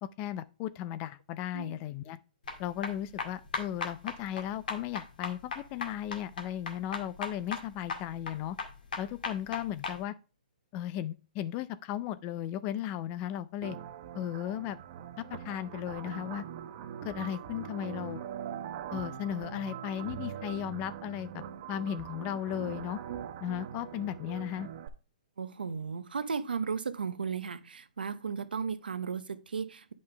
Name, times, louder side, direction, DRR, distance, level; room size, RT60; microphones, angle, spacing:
voice 1, 0.0-2.2 2.6-8.6 9.0-10.1 10.7-13.8 14.1-14.8 15.3-16.4 17.0-18.3 18.9-21.4 21.7-23.0 23.4-24.7, left 11 dB, 25° left, 0.4 m, -36 dB
sound 1, 2.4-10.0, left 4 dB, 70° left, 1.8 m, -38 dB
sound 2, 13.6-24.9, right 9 dB, 40° right, 0.8 m, -42 dB
voice 2, 25.4-29.9, right 6 dB, 85° right, 0.7 m, -35 dB
8.8 x 5.4 x 3.3 m
hypercardioid pair, 145°, 5 cm